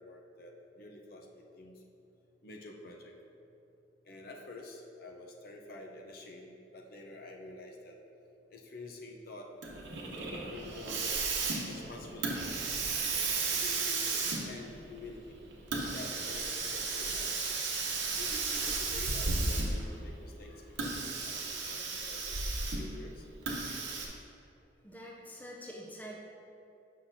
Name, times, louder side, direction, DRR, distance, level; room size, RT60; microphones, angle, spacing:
voice 1, 0.0-1.7 2.4-3.1 4.0-8.0 8.5-9.5 10.5-11.1 11.7-12.6 13.5-15.4 15.9-17.3 18.2-20.5 20.8-22.5 22.7-23.3, left 2 dB, 50° left, 0 dB, 0.6 m, -48 dB
Hiss, 9.6-19.9 20.7-23.0 23.5-24.1, right 4 dB, 75° right, 0.9 m, -34 dB
voice 2, 20.4-21.0 21.4-21.5 24.8-26.2, equal, 10° left, -3 dB, 0.5 m, -47 dB
7.6 x 5.6 x 2.7 m, 2.7 s
head